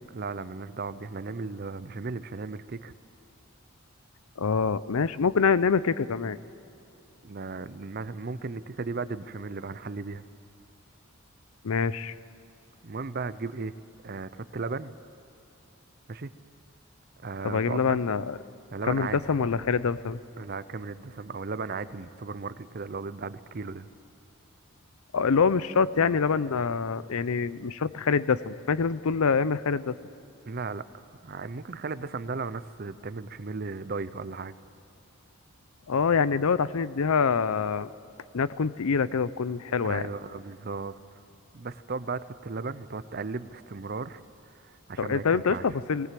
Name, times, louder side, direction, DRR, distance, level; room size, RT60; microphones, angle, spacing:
voice 1, 0.1-2.9 7.2-10.2 12.8-13.7 14.0-14.9 16.1-16.3 17.2-18.0 18.7-19.2 20.4-23.9 30.5-34.5 39.8-41.2 41.5-44.2 44.6-45.6, right 4 dB, 45° right, 14 dB, 0.5 m, -36 dB
voice 2, 4.4-6.4 11.6-12.1 17.4-18.4 18.9-20.2 25.1-29.9 35.9-37.9 38.3-40.0 45.0-46.1, left 5 dB, 75° left, 17 dB, 0.5 m, -25 dB
19.5 x 18.0 x 7.6 m, 2.9 s
head